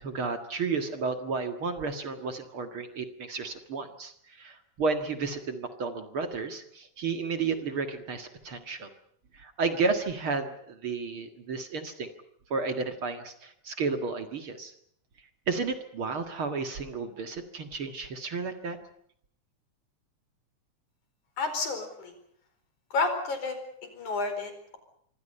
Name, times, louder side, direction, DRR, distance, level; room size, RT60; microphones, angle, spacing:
voice 1, 0.0-8.9 9.3-12.1 12.5-14.7 15.5-18.8, right 4 dB, 50° right, 7 dB, 2.4 m, -32 dB
voice 2, 21.4-22.1 22.9-24.8, left 3 dB, 75° left, 8 dB, 6.0 m, -31 dB
26.5 x 24.5 x 5.5 m, 0.66 s
omnidirectional pair, 3.4 m